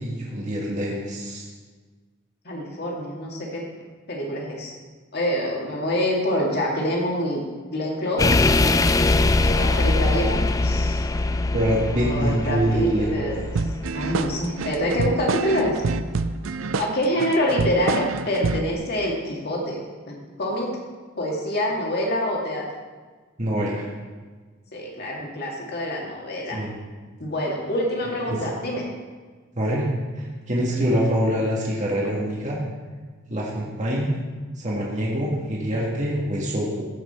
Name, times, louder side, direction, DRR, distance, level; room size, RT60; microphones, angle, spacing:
voice 1, 0.0-1.4 11.5-13.3 23.4-23.9 26.5-26.8 28.3-28.4 29.5-32.6 33.3-34.1 34.6-36.9, equal, 40° right, -4 dB, 1.8 m, -25 dB
voice 2, 2.4-3.6 4.1-4.7 5.1-7.4 7.7-8.5 9.4-11.0 11.9-13.4 13.9-15.9 16.8-20.8 21.2-22.6 24.7-26.6 27.2-28.9, equal, 55° left, -2 dB, 2.4 m, -26 dB
sound 1, 8.2-15.2 15.5-15.9, left 2 dB, 15° left, 0.3 m, -23 dB
sound 2, 13.5-18.7, right 4 dB, 75° right, 0.5 m, -27 dB
15.0 x 6.1 x 4.4 m, 1.4 s
head